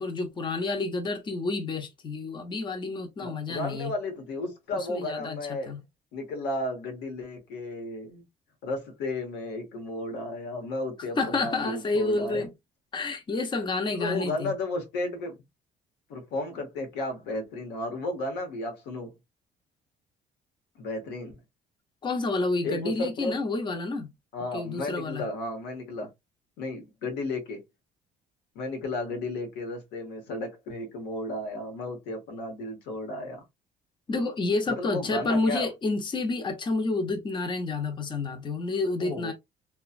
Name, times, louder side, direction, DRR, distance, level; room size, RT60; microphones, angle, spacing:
voice 1, 0.0-3.9 4.9-5.8 11.2-12.5 12.9-14.5 22.0-24.1 24.5-25.3 34.1-39.3, left 3 dB, 25° left, 0.7 m, -29 dB
voice 2, 3.2-5.7 6.1-8.2 8.6-12.5 13.9-15.4 16.1-19.1 20.8-21.4 22.6-23.4 24.3-26.1 26.6-27.6 28.5-33.4 34.7-35.7 39.0-39.3, left 2 dB, 90° left, 1.0 m, -33 dB
2.9 x 2.2 x 2.3 m
cardioid pair, 110°, 17 cm